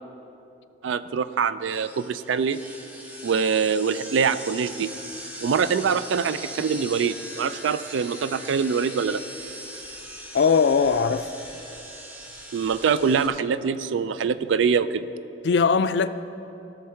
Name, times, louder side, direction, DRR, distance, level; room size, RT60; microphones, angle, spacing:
voice 1, 0.8-2.6 3.2-4.9 5.4-9.2 12.5-15.1, right 6 dB, 90° right, 0.4 m, -24 dB
sound 1, 1.7-13.3, equal, 10° right, 0.7 m, -40 dB
voice 2, 10.3-11.3 15.4-16.1, left 5 dB, 65° left, 0.4 m, -20 dB
16.0 x 6.6 x 4.5 m
head